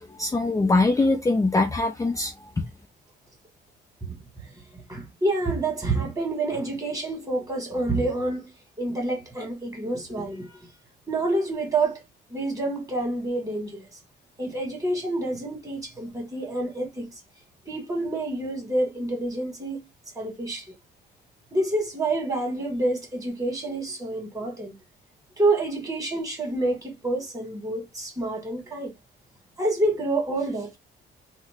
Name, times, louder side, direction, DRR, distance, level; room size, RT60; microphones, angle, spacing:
voice 1, 0.2-2.3, left 2 dB, 15° left, 0.5 m, -22 dB
voice 2, 4.7-8.5 8.8-10.5 11.1-12.0 12.3-13.8 14.4-17.1 17.7-19.8 20.2-20.7 21.5-24.7 25.4-28.9 29.6-30.8, right 2 dB, 15° right, 2.0 m, -28 dB
3.2 x 2.1 x 3.6 m
cardioid pair, 90°, 20 cm